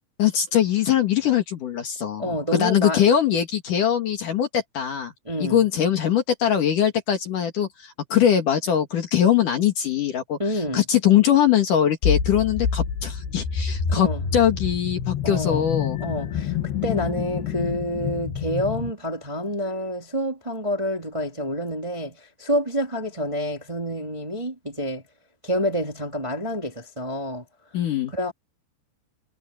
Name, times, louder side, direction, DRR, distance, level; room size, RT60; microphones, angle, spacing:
voice 1, 0.2-5.1 5.4-16.0 27.7-28.1, left 9 dB, 55° left, 3.0 m, -22 dB
voice 2, 2.2-3.0 5.2-5.6 10.4-10.8 13.9-14.3 15.2-15.7 16.0-25.0 25.4-27.4 28.1-28.3, equal, 10° right, 2.3 m, -28 dB
sound 1, 12.0-18.9, left 7 dB, 75° left, 4.0 m, -27 dB
omnidirectional pair, 4.8 m